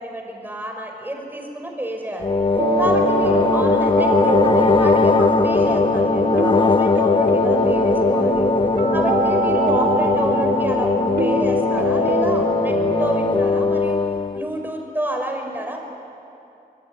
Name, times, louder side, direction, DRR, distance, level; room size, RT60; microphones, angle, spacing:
voice 1, 0.0-2.3 2.8-8.4 8.9-14.0 14.3-15.8, right 1 dB, 10° right, 2 dB, 5.5 m, -29 dB
sound 1, 2.2-14.4, left 4 dB, 30° left, 0.8 m, -19 dB
sound 2, 2.6-13.4, right 2 dB, 60° right, 1.6 m, -24 dB
26.5 x 21.5 x 9.9 m, 2.7 s
wide cardioid pair, 100°, 17 cm